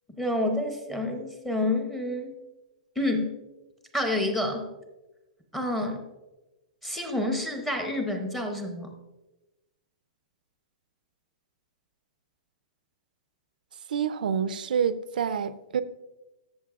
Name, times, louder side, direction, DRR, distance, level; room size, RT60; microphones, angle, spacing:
voice 1, 0.2-2.3 3.0-3.4 3.9-4.7 5.5-6.0 6.8-8.9, left 1 dB, 5° left, 3 dB, 0.6 m, -28 dB
voice 2, 13.9-15.8, right 7 dB, 85° right, 13 dB, 0.5 m, -27 dB
13.5 x 7.0 x 2.4 m, 1.0 s
hypercardioid pair, 175°, 5 cm